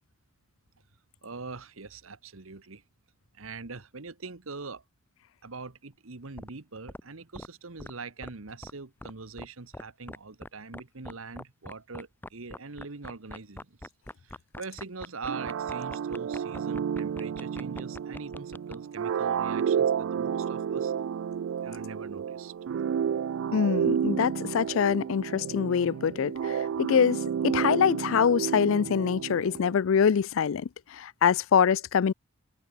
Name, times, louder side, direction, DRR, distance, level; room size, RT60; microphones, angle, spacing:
voice 1, 1.2-2.8 3.3-4.8 5.4-13.9 14.2-20.9 21.6-22.5, right 4 dB, 85° right, 1.4 m, -42 dB
sound 1, 6.4-6.5 6.9-7.0 7.3-7.5 7.8-7.9 8.2-8.3 8.6-8.7 9.0-9.1 9.4-9.5 9.7-10.2 10.4-10.5 10.7-18.7, left 1 dB, 10° left, 0.9 m, -41 dB
sound 2, 15.3-29.8, right 7 dB, 70° right, 0.3 m, -31 dB
voice 2, 23.5-27.2 27.4-32.1, left 7 dB, 75° left, 0.4 m, -24 dB
head